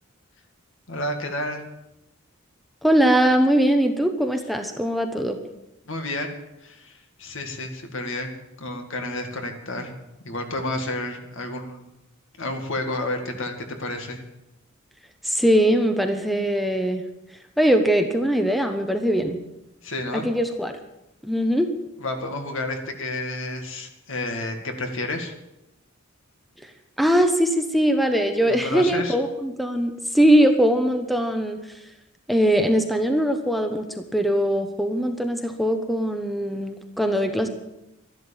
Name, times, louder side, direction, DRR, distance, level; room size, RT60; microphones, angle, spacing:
voice 1, 0.9-1.6 5.9-6.3 6.6-8.3 8.6-9.9 10.2-11.9 12.4-14.2 19.8-20.3 22.0-25.3 28.5-29.2, left 2 dB, 65° left, 4 dB, 2.2 m, -30 dB
voice 2, 2.8-5.4 15.2-17.0 17.6-19.4 20.1-20.7 21.2-21.7 27.0-31.6 32.3-37.5, equal, ahead, 6 dB, 1.0 m, -21 dB
13.0 x 11.5 x 7.3 m, 0.88 s
head